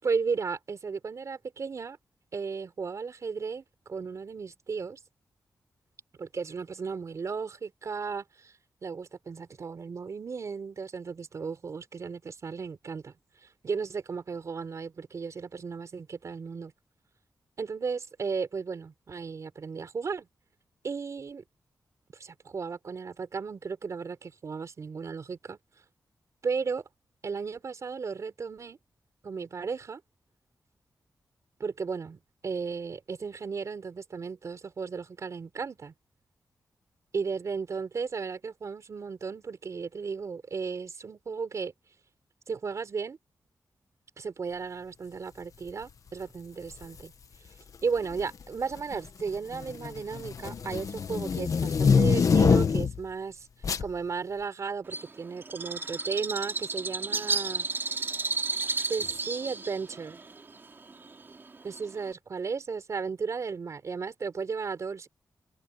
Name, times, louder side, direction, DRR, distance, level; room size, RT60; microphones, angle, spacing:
voice 1, 0.0-2.0 2.3-5.0 6.2-8.5 8.8-13.1 13.6-16.7 17.6-20.3 20.8-21.4 22.1-25.6 26.4-26.8 27.2-28.8 29.2-30.0 31.6-35.9 37.1-41.7 42.5-43.2 44.2-47.1 47.8-53.5 53.8-57.7 58.9-60.2 61.6-65.1, right 5 dB, 50° right, 4.4 m, -35 dB
sound 1, 46.7-47.0 48.0-48.4 48.8-53.0 53.6-53.9, left 6 dB, 60° left, 1.3 m, -25 dB
Bird, 54.9-62.1, right 3 dB, 35° right, 3.3 m, -33 dB
wide cardioid pair, 145°, 7 cm